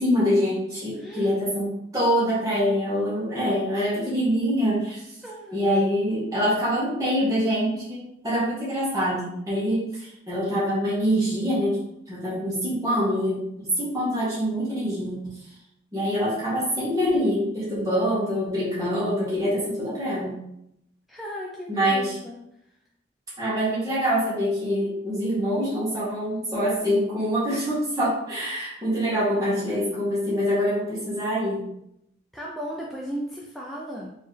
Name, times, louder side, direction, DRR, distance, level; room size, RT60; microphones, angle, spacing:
voice 1, 0.0-5.1 5.5-11.8 12.1-15.5 15.9-20.4 21.7-22.2 23.4-31.7, equal, 20° right, -9 dB, 1.4 m, -25 dB
voice 2, 0.9-1.4 5.2-5.7 21.1-22.4 32.3-34.2, equal, ahead, -4 dB, 0.4 m, -36 dB
4.4 x 3.1 x 3.2 m, 0.78 s
head